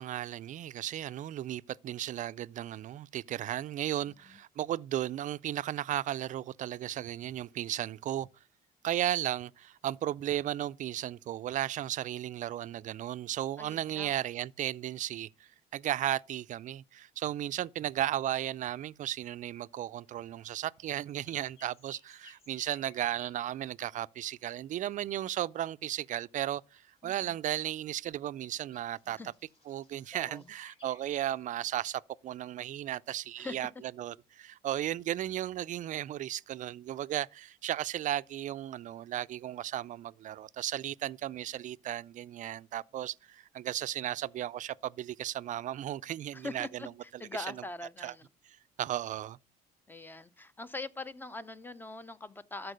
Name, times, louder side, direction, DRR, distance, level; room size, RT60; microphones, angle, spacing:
voice 1, 0.0-8.3 8.8-29.2 29.7-46.8 47.1-47.2 47.5-47.6 48.0-48.1 48.5-49.4, right 12 dB, 50° right, 0.4 m, -35 dB
voice 2, 4.1-4.4 13.6-14.1 27.0-27.4 29.1-29.3 30.1-30.5 33.4-33.6 46.3-48.2 49.9-52.7, left 2 dB, 10° left, 0.6 m, -42 dB
sound 1, 18.2-33.7, left 3 dB, 35° left, 3.4 m, -65 dB
13.0 x 4.6 x 6.3 m
cardioid pair, 110°, 17 cm